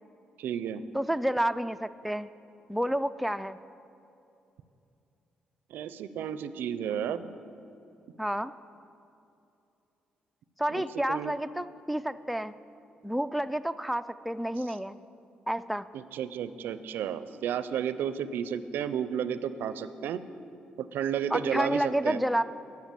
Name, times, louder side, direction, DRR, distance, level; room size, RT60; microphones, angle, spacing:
voice 1, 0.4-0.8 5.7-7.3 10.7-11.4 15.9-20.2 20.8-22.2, right 8 dB, 80° right, 13 dB, 0.4 m, -32 dB
voice 2, 0.9-2.3 2.7-3.6 8.2-8.5 10.6-12.5 13.0-15.0 15.5-15.9 21.3-22.4, right 1 dB, ahead, 10 dB, 0.3 m, -30 dB
12.5 x 5.9 x 7.4 m, 2.8 s
cardioid pair, 75°, 3 cm